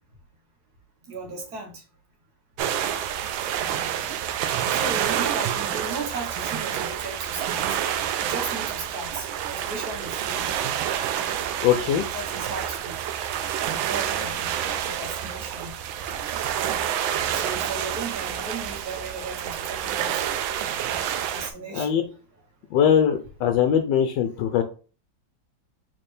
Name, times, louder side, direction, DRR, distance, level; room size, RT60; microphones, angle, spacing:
voice 1, 1.1-1.8 4.7-7.8 8.2-10.5 12.1-12.9 13.6-14.5 14.9-15.7 17.3-20.3 21.3-22.1, right 3 dB, 55° right, 2 dB, 1.7 m, -36 dB
sound 1, 2.6-21.5, right 10 dB, 90° right, 1.4 m, -28 dB
voice 2, 11.6-12.0 21.7-22.0 22.7-24.6, left 9 dB, 75° left, 6 dB, 1.2 m, -21 dB
4.2 x 3.9 x 3.3 m, 0.36 s
omnidirectional pair, 2.1 m